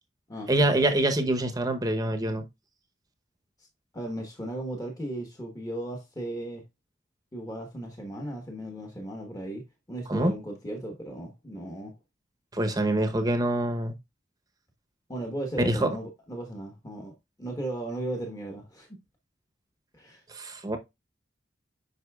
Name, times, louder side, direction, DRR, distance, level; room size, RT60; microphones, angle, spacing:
voice 1, 0.5-2.4 10.1-10.3 12.5-13.9 15.6-15.9 20.3-20.8, right 1 dB, 20° right, 0.8 m, -25 dB
voice 2, 3.9-6.6 7.3-11.9 15.1-17.1 17.4-19.0 19.9-20.2, right 1 dB, 20° left, 1.1 m, -36 dB
8.0 x 5.5 x 2.3 m
head